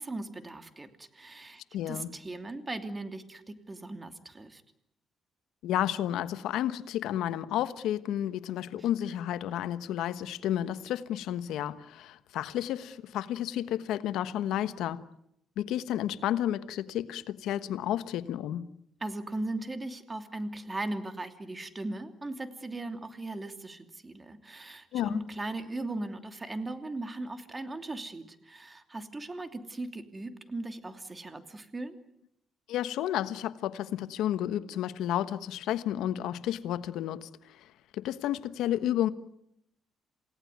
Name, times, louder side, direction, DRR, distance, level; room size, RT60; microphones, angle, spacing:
voice 1, 0.0-1.6 1.9-4.6 19.0-32.0, right 2 dB, 25° right, 2.9 m, -38 dB
voice 2, 1.7-2.1 5.6-15.0 15.6-18.7 24.9-25.2 32.7-37.6 37.9-39.1, left 11 dB, 85° left, 1.2 m, -31 dB
28.5 x 17.5 x 9.5 m
cardioid pair, 90°, 0 cm